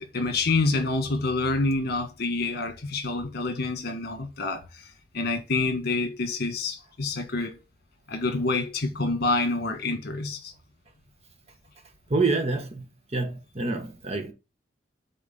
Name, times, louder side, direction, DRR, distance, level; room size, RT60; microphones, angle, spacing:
voice 1, 0.1-4.6 5.1-7.6 8.1-10.5, left 3 dB, 60° left, 1.6 m, -27 dB
voice 2, 12.1-12.8 13.1-14.3, right 3 dB, 35° right, 1.2 m, -27 dB
8.6 x 4.1 x 4.1 m
head